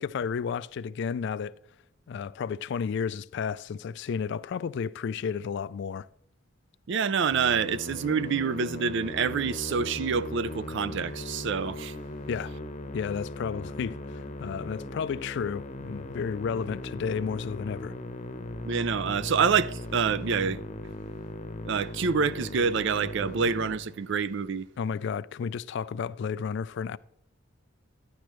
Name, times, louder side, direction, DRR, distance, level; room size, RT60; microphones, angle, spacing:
voice 1, 0.0-1.5 2.1-6.1 12.3-12.5 12.9-17.9 24.8-27.0, left 6 dB, 55° left, 0.3 m, -32 dB
voice 2, 6.9-12.0 18.6-20.6 21.7-24.7, right 6 dB, 60° right, 0.4 m, -27 dB
Musical instrument, 7.3-24.4, left 1 dB, 35° left, 0.8 m, -38 dB
12.0 x 10.0 x 3.1 m
head